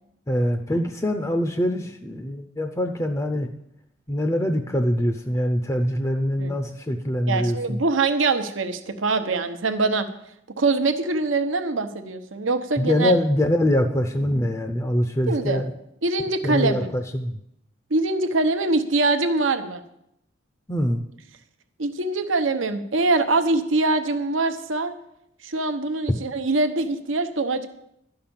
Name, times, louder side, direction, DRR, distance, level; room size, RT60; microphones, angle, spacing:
voice 1, 0.3-3.5 4.1-7.8 12.8-15.7 16.4-17.4 20.7-21.0, equal, 15° left, 5 dB, 0.6 m, -24 dB
voice 2, 7.3-10.1 10.6-13.1 15.3-15.6 16.0-16.9 17.9-19.8 21.8-24.9 25.4-27.7, right 3 dB, 75° right, 8 dB, 0.9 m, -23 dB
12.0 x 5.8 x 8.8 m, 0.79 s
head